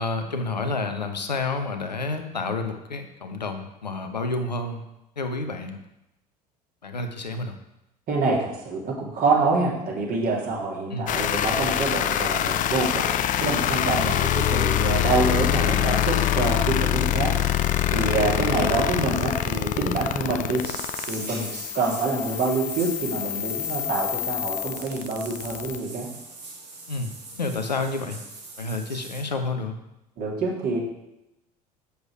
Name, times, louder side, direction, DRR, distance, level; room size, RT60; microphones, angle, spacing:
voice 1, 0.0-4.8 5.2-5.8 6.8-7.5 10.9-11.1 15.6-15.8 18.2-18.3 26.9-27.1 27.4-28.2 28.6-29.8, left 3 dB, 85° left, 6 dB, 0.9 m, -29 dB
voice 2, 8.1-17.3 17.9-20.6 21.1-26.1 30.2-30.8, right 3 dB, 45° right, -3 dB, 2.9 m, -26 dB
sound 1, 11.1-25.8, left 11 dB, 40° left, 0.6 m, -25 dB
sound 2, 20.6-29.2, right 3 dB, 80° right, 1.9 m, -41 dB
8.0 x 7.1 x 4.7 m, 0.90 s
figure-of-eight pair, 65°, 21 cm